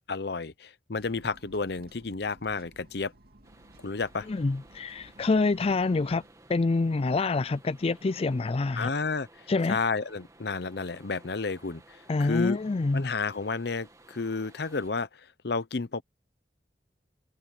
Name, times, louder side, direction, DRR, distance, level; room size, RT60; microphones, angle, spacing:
voice 1, 0.1-3.1 3.8-4.3 8.7-9.3 9.7-12.6 12.9-15.1 15.4-16.0, left 4 dB, 65° left, 0.9 m, -31 dB
sound 1, 1.0-6.3, right 1 dB, 60° right, 2.7 m, -56 dB
sound 2, 3.4-14.9, right 2 dB, 20° right, 2.1 m, -56 dB
voice 2, 4.3-6.2 6.5-8.9 9.5-9.8 12.1-13.0, left 3 dB, 35° left, 0.4 m, -26 dB
head